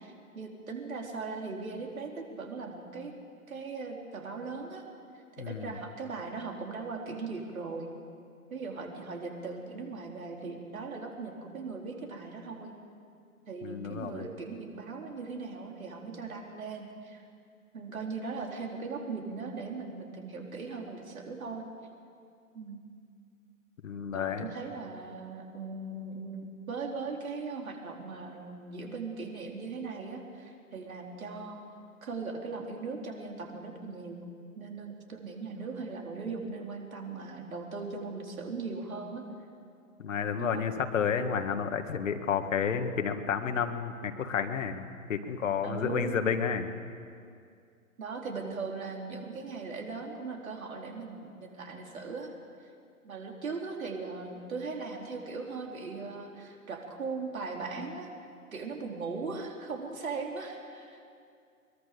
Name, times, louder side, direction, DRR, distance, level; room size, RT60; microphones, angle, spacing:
voice 1, 0.0-3.1 3.5-4.8 5.1-7.9 8.5-12.7 13.5-17.3 17.7-21.6 22.5-22.8 24.1-31.5 32.0-34.2 34.6-39.2 40.3-40.6 45.6-46.1 48.0-52.3 53.0-58.1 58.5-61.0, right 4 dB, 65° right, 1 dB, 4.3 m, -39 dB
voice 2, 5.4-5.7 13.6-14.3 23.8-24.4 40.0-46.7, left 7 dB, 60° left, 7 dB, 1.9 m, -31 dB
22.5 x 22.5 x 6.9 m, 2.3 s
figure-of-eight pair, 125°, 44 cm